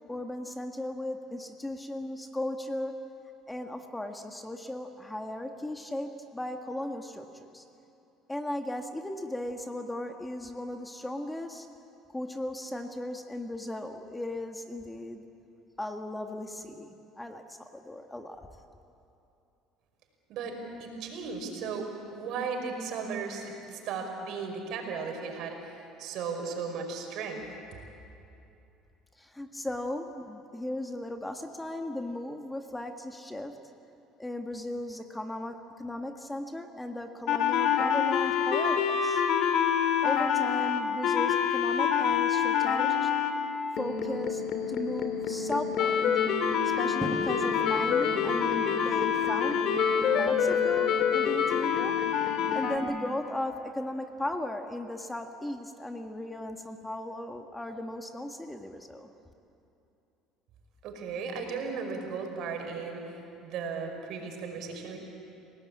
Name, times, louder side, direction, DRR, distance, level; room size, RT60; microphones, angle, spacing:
voice 1, 0.1-3.0 3.5-7.6 8.3-11.7 12.1-15.2 15.8-18.5 29.2-33.6 34.2-39.2 40.0-43.1 43.8-44.4 44.7-46.1 46.6-49.7 49.9-52.0 52.5-59.1, left 1 dB, 10° left, 5 dB, 1.6 m, -36 dB
voice 2, 20.3-25.6 26.0-27.4 60.8-63.0 63.4-65.0, right 5 dB, 65° right, 3 dB, 5.1 m, -36 dB
sound 1, 37.3-43.3 43.8-52.8, left 7 dB, 60° left, 2.6 m, -26 dB
sound 2, 47.0-53.2, right 1 dB, 10° right, 6.7 m, -44 dB
30.0 x 18.5 x 8.6 m, 2.8 s
supercardioid pair, 100°, 0 cm